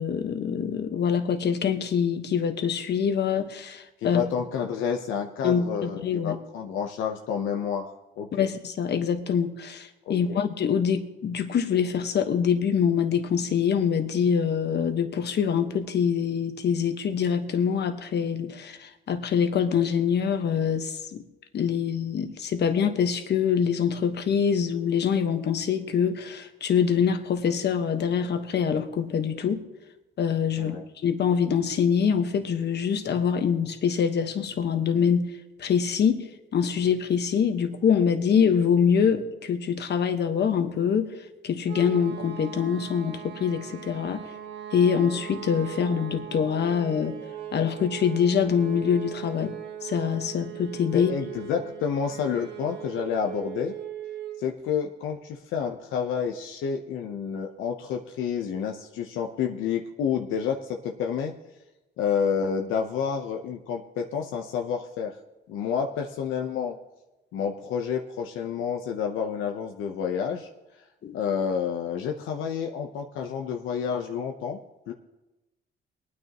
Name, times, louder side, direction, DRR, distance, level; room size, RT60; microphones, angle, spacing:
voice 1, 0.0-4.2 5.4-6.4 8.3-21.2 21.5-29.6 30.2-35.2 35.6-36.2 36.5-41.1 41.4-44.2 44.7-47.2 47.5-49.5 49.8-51.1 71.0-71.1, left 7 dB, 60° left, 7 dB, 1.3 m, -25 dB
voice 2, 4.0-7.9 8.2-8.5 10.1-10.4 30.6-30.9 50.9-53.7 54.4-61.3 62.0-65.2 65.5-66.8 67.3-70.5 71.1-74.6 74.9-75.0, left 7 dB, 90° left, 3 dB, 0.8 m, -29 dB
sound 1, 41.7-54.5, right 11 dB, 60° right, 1.5 m, -39 dB
24.0 x 9.6 x 3.0 m, 1.1 s
cardioid pair, 90°, 20 cm